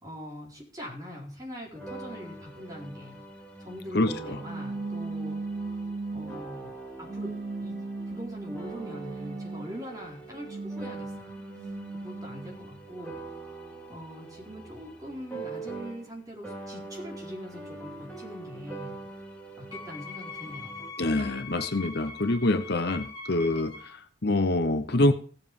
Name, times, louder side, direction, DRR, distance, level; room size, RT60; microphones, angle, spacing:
voice 1, 0.0-3.2 3.6-5.4 6.1-7.3 7.6-11.3 12.0-13.2 13.9-19.0 19.6-20.8, equal, 20° right, -3 dB, 4.2 m, -42 dB
sound 1, 1.7-16.2 16.4-20.9, right 3 dB, 5° left, 2.9 m, -43 dB
voice 2, 3.9-4.4 21.0-25.1, left 2 dB, 55° left, 9 dB, 0.9 m, -26 dB
sound 2, 4.4-6.5 7.1-9.8 10.3-12.6, right 3 dB, 40° right, 0.5 m, -37 dB
Wind instrument woodwind instrument, 19.7-24.0, left 4 dB, 25° left, 3.5 m, -42 dB
16.5 x 7.2 x 5.4 m, 0.42 s
head